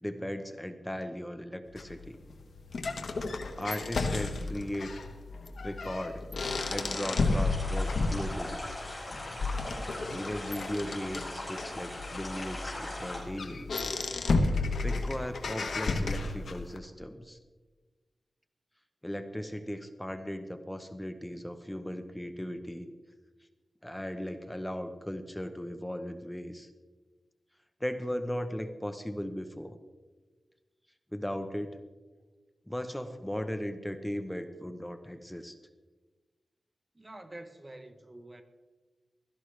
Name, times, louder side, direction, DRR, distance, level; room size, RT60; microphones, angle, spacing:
voice 1, 0.0-2.2 3.6-5.0 5.6-6.2 6.7-8.6 10.1-13.7 14.8-17.4 19.0-22.9 23.8-26.7 27.8-29.8 31.1-31.8 32.7-35.5, equal, 5° left, 8 dB, 0.9 m, -37 dB
sound 1, 1.8-16.8, left 3 dB, 80° left, 1.2 m, -33 dB
sound 2, 6.4-13.2, left 1 dB, 25° left, 5.0 m, -40 dB
voice 2, 36.9-38.4, right 1 dB, 25° right, 8 dB, 0.9 m, -47 dB
16.0 x 13.5 x 3.3 m, 1.3 s
wide cardioid pair, 90°, 0 cm